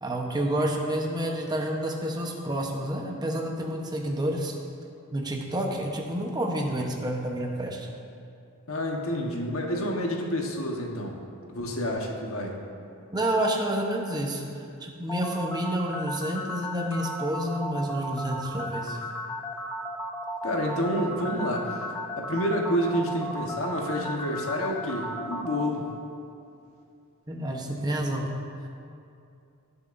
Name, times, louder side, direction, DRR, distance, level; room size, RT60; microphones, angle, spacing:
voice 1, 0.0-4.5 5.1-7.9 13.1-14.4 14.8-19.0 27.3-28.3, right 1 dB, 20° right, 0 dB, 0.9 m, -29 dB
voice 2, 8.7-11.2 11.5-12.6 20.4-21.8 22.2-25.9, equal, 65° left, 1 dB, 1.2 m, -29 dB
sound 1, 15.1-25.7, equal, 10° left, 0.6 m, -35 dB
17.5 x 6.9 x 2.6 m, 2.5 s
head